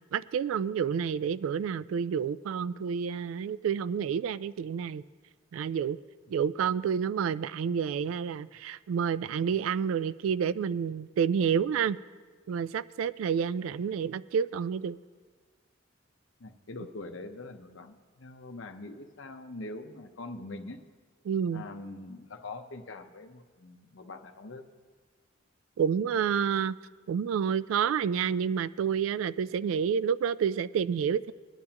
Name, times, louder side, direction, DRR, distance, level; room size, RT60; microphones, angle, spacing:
voice 1, 0.1-5.0 5.5-6.0 6.3-12.0 12.5-15.0 21.3-21.6 25.8-26.7 27.1-31.3, right 7 dB, 85° right, 0.3 m, -29 dB
voice 2, 16.4-20.8 21.5-24.6, left 2 dB, 70° left, 0.8 m, -43 dB
20.5 x 10.5 x 2.9 m
head